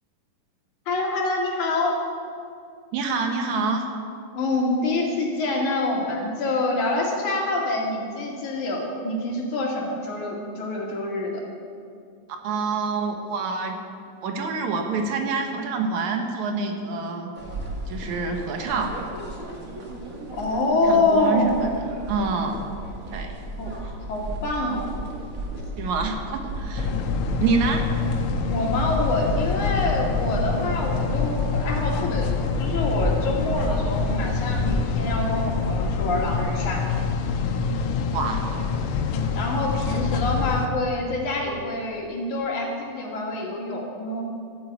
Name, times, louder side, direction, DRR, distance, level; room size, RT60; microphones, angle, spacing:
voice 1, 0.9-2.0 4.3-11.4 20.3-21.6 23.6-23.7 24.1-24.9 28.5-36.9 39.1-44.2, left 2 dB, 70° left, -1 dB, 3.6 m, -26 dB
voice 2, 2.9-3.8 12.4-13.8 14.2-17.3 17.9-18.9 20.9-21.7 22.1-22.6 23.1-23.3 25.8-26.9 27.4-27.8 38.1-38.4, right 4 dB, 70° right, 4 dB, 2.5 m, -26 dB
sound 1, 17.3-36.4, right 1 dB, 30° right, 1.9 m, -33 dB
sound 2, 26.8-40.7, left 5 dB, 90° left, 2.6 m, -26 dB
14.0 x 9.5 x 8.2 m, 2.4 s
omnidirectional pair, 3.6 m